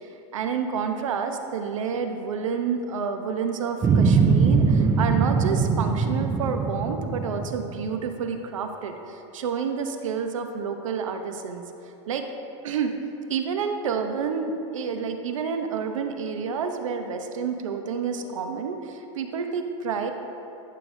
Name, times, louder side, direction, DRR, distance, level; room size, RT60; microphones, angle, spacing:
voice 1, 0.3-12.2 12.6-12.9 13.3-20.1, right 6 dB, 90° right, 6 dB, 0.8 m, -29 dB
sound 1, 3.8-8.1, right 5 dB, 15° right, 0.4 m, -22 dB
12.5 x 6.7 x 2.7 m, 3.0 s
supercardioid pair, 140°, 16 cm